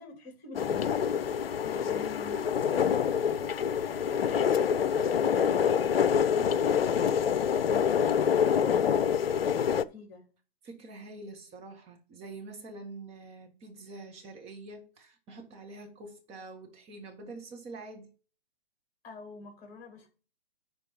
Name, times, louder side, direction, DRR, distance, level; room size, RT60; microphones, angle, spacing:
voice 1, 0.0-5.9 6.3-10.3 19.0-20.1, left 3 dB, 25° left, 2.9 m, -47 dB
sound 1, 0.5-9.8, left 8 dB, 70° left, 0.6 m, -26 dB
voice 2, 10.6-18.1, right 3 dB, 20° right, 1.6 m, -46 dB
11.0 x 3.8 x 5.2 m
figure-of-eight pair, 130°, 31 cm